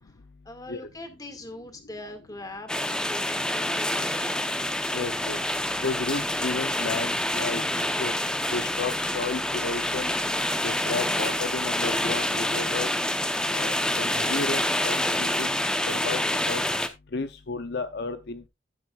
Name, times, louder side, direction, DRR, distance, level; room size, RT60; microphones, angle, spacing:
voice 1, 0.0-4.8, left 1 dB, 20° left, 6 dB, 2.0 m, -42 dB
sound 1, 2.7-16.9, left 1 dB, 5° left, 0.8 m, -27 dB
voice 2, 4.9-5.4 5.8-7.6 8.0-8.1 8.5-10.1 10.6-12.9 13.5-15.5 15.9-16.2 16.5-16.6 17.1-18.5, left 3 dB, 60° left, 10 dB, 0.7 m, -32 dB
12.5 x 9.5 x 2.4 m, 0.23 s
head